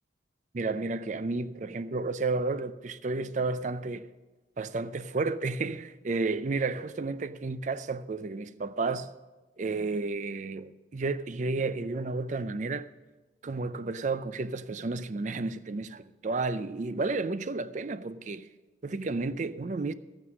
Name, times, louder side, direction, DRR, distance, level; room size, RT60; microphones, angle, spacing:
voice 1, 0.5-4.1 4.6-9.1 9.6-12.9 13.4-18.5 18.8-19.9, right 3 dB, 40° right, 0.4 m, -32 dB
12.5 x 9.0 x 6.2 m
head